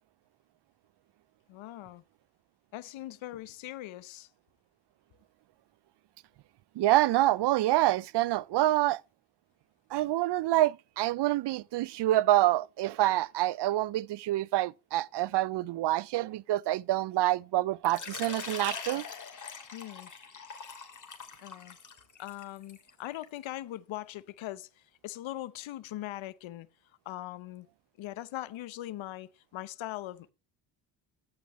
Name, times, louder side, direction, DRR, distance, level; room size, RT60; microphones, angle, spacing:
voice 1, 1.5-2.0 2.7-4.3 19.7-20.1 21.4-21.8 22.2-26.7 27.0-27.7 28.0-30.3, left 14 dB, 75° left, 0.9 m, -41 dB
voice 2, 6.8-9.0 9.9-19.0, right 15 dB, 60° right, 0.5 m, -27 dB
Water / Liquid, 17.8-23.4, left 5 dB, 40° left, 2.7 m, -43 dB
14.0 x 8.7 x 3.1 m
supercardioid pair, 65°, 47 cm